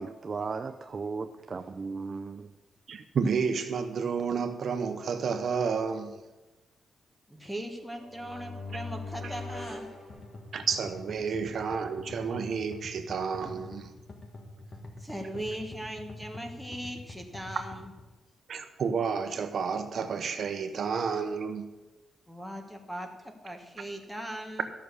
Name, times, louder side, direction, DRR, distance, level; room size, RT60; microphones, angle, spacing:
voice 1, 0.0-2.5, right 4 dB, 30° right, 0.4 m, -36 dB
voice 2, 2.9-6.2 9.2-9.3 10.5-13.9 18.5-21.7, right 5 dB, 50° right, 0.9 m, -31 dB
voice 3, 7.3-9.9 15.0-17.9 22.3-24.7, right 1 dB, ahead, 1.2 m, -39 dB
sound 1, 7.8-10.9, left 3 dB, 55° left, 4.2 m, -41 dB
sound 2, 10.1-18.1, left 2 dB, 35° left, 1.6 m, -45 dB
13.5 x 6.2 x 6.9 m
wide cardioid pair, 165°, 0 cm